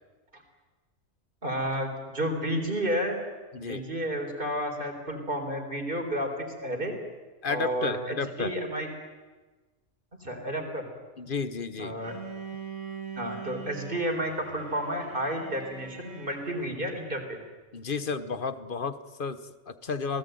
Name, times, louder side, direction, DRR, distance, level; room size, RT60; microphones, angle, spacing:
voice 1, 1.4-3.2 3.6-6.9 7.5-8.9 10.2-10.9 11.8-12.1 13.2-17.4, equal, 45° right, 4 dB, 4.2 m, -31 dB
voice 2, 7.4-8.5 11.2-12.0 17.7-20.2, left 5 dB, 45° left, 13 dB, 1.2 m, -32 dB
Bowed string instrument, 12.0-16.9, right 6 dB, 85° right, 3.7 m, -42 dB
27.5 x 18.5 x 9.2 m, 1.3 s
omnidirectional pair, 1.2 m